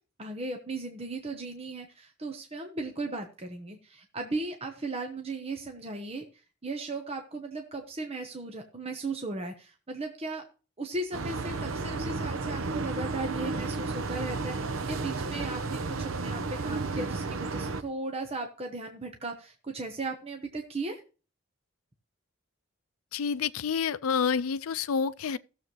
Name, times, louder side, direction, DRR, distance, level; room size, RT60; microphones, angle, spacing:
voice 1, 0.2-6.3 6.6-10.4 10.8-21.0, right 2 dB, 30° right, 1.0 m, -37 dB
sound 1, 11.1-17.8, right 3 dB, 70° right, 0.8 m, -32 dB
voice 2, 23.1-25.4, left 6 dB, 90° left, 0.5 m, -28 dB
16.5 x 7.1 x 3.1 m
head